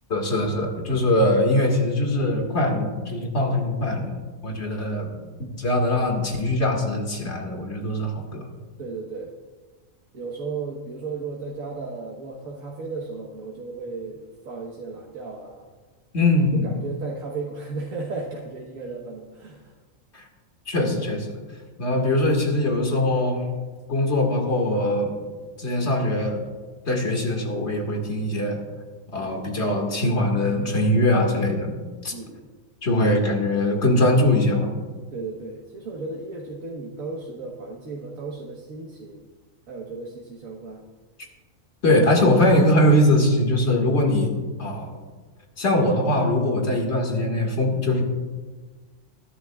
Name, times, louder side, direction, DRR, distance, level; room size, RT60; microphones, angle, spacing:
voice 1, 0.1-4.2 4.4-5.2 5.6-8.5 16.1-16.7 20.1-20.2 20.7-21.3 21.8-23.4 23.9-25.1 25.6-26.4 26.9-28.6 29.1-31.7 32.0-32.1 32.8-34.7 41.8-44.3 44.6-44.9 45.6-48.0, left 1 dB, 55° left, 1 dB, 2.2 m, -22 dB
voice 2, 8.8-9.3 10.1-15.6 16.6-19.7 32.1-32.5 35.1-39.3 39.7-40.8, right 3 dB, 85° right, -2 dB, 1.7 m, -35 dB
21.0 x 11.0 x 2.4 m, 1.4 s
omnidirectional pair, 1.4 m